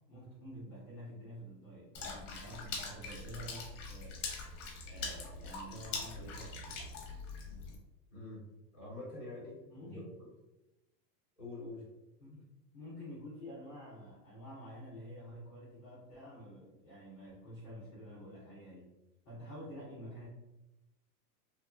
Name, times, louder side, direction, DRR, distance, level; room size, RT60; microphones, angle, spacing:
voice 1, 0.1-4.3 4.9-6.8 9.7-10.1 12.2-12.4 12.7-18.9 19.2-20.3, equal, 15° left, -14 dB, 0.4 m, -49 dB
Water / Splash splatter, 1.9-7.8, left 3 dB, 50° left, 0.7 m, -43 dB
voice 2, 8.1-8.4 8.7-10.0 11.4-11.9, left 2 dB, 10° right, -7 dB, 0.8 m, -46 dB
2.9 x 2.1 x 2.3 m, 0.97 s
supercardioid pair, 165°, 48 cm